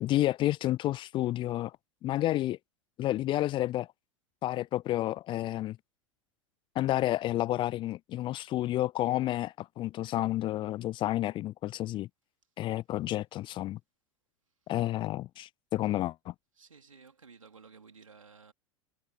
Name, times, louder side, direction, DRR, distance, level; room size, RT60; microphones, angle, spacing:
voice 1, 0.0-1.7 2.0-2.6 3.0-3.9 4.4-5.8 6.8-12.1 12.6-13.8 14.7-16.3, left 14 dB, 30° left, 0.4 m, -30 dB
voice 2, 16.6-18.5, right 5 dB, 80° right, 3.8 m, -54 dB
figure-of-eight pair, 85°, 17 cm